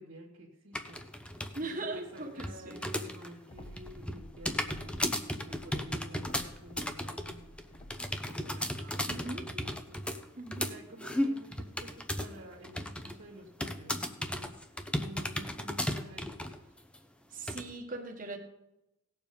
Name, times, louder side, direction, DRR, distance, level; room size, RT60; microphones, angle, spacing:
voice 1, 0.0-7.5 8.1-10.3 10.6-16.7, right 1 dB, 70° right, -2 dB, 2.0 m, -51 dB
sound 1, 0.7-1.6 1.9-3.3 3.6-12.4 12.6-13.2 13.6-16.6 16.9-17.0 17.5-17.6, left 1 dB, 5° left, 0.7 m, -35 dB
voice 2, 1.5-2.8 9.1-9.5 10.4-10.7 17.3-18.4, right 2 dB, 40° right, 3 dB, 1.6 m, -39 dB
sound 2, 3.5-5.1 5.4-8.2, left 1 dB, 30° left, 1.0 m, -51 dB
17.5 x 7.0 x 5.3 m, 0.95 s
head